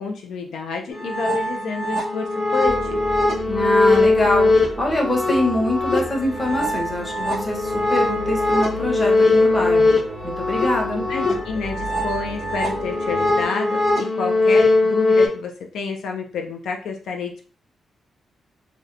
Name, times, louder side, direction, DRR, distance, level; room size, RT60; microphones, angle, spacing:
voice 1, 0.0-3.0 10.9-17.5, left 4 dB, 80° left, 3 dB, 0.3 m, -29 dB
sound 1, 0.9-15.3, left 2 dB, 55° left, 1.0 m, -21 dB
sound 2, 2.6-13.5, right 1 dB, 55° right, 0.5 m, -36 dB
voice 2, 3.5-9.9 10.2-11.0, left 1 dB, 20° left, -1 dB, 0.7 m, -24 dB
2.7 x 2.1 x 2.4 m, 0.41 s
cardioid pair, 120°, 0 cm